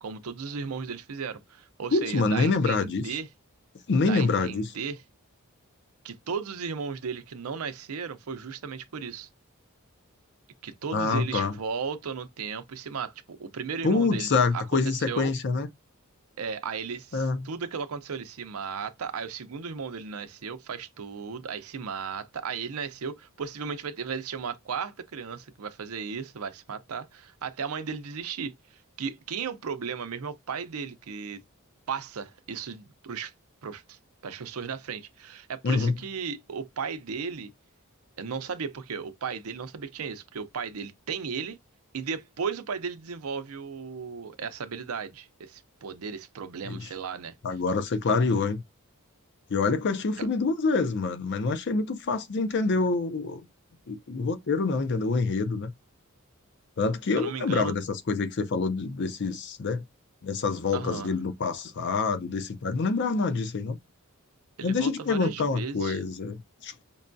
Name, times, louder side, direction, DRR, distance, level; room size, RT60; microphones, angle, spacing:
voice 1, 0.0-3.3 4.1-5.0 6.0-9.3 10.6-15.3 16.4-28.5 29.0-31.4 31.9-33.3 33.6-37.5 38.2-41.6 41.9-47.3 50.2-50.3 57.1-57.8 60.7-61.1 64.6-66.0, right 6 dB, 90° right, 0.6 m, -35 dB
voice 2, 1.9-3.1 3.9-4.7 10.9-11.6 13.8-15.7 17.1-17.5 35.6-35.9 46.6-46.9 47.4-48.6 49.5-53.5 53.9-55.7 56.8-59.8 60.2-63.8 64.6-66.8, left 4 dB, 55° left, 0.5 m, -26 dB
5.3 x 2.2 x 2.5 m
head